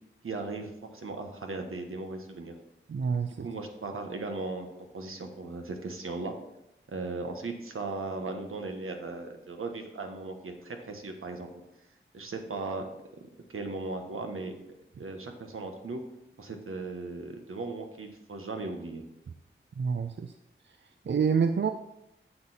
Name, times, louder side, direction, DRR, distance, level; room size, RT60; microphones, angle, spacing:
voice 1, 0.2-2.5 3.3-4.7 4.9-6.3 6.9-11.5 12.1-12.8 13.5-14.5 15.0-16.0 16.4-19.0, right 3 dB, 80° right, 4 dB, 1.3 m, -37 dB
voice 2, 2.9-3.5 19.8-20.3 21.1-21.7, right 6 dB, 60° right, 7 dB, 0.5 m, -27 dB
8.6 x 6.9 x 4.2 m, 0.87 s
wide cardioid pair, 75°, 21 cm